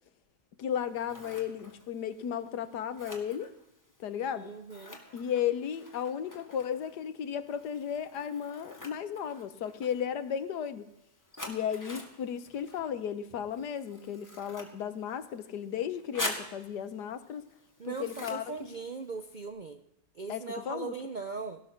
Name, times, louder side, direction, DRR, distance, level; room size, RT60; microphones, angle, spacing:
voice 1, 0.6-3.5 4.0-4.5 5.1-10.9 11.5-17.4 17.8-18.5 20.3-20.9, left 8 dB, 85° left, 12 dB, 1.5 m, -34 dB
Scissors, 0.7-19.5, left 1 dB, 10° left, 1.9 m, -46 dB
voice 2, 4.3-5.0 17.8-19.8 20.2-21.6, right 4 dB, 60° right, 7 dB, 0.4 m, -39 dB
17.5 x 11.0 x 6.5 m, 0.83 s
omnidirectional pair, 1.7 m